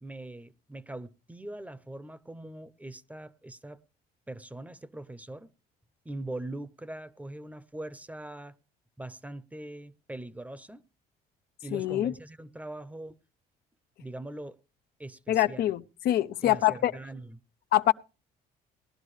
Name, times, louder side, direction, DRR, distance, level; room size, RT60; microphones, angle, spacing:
voice 1, 0.0-3.8 4.3-5.5 6.0-8.6 9.0-10.8 11.6-13.1 14.0-14.6 15.0-15.6 16.4-17.4, right 1 dB, 10° right, 0.8 m, -42 dB
voice 2, 11.7-12.1 15.3-16.9 17.7-17.9, left 13 dB, 70° left, 0.7 m, -25 dB
19.0 x 12.0 x 3.2 m
cardioid pair, 110°, 17 cm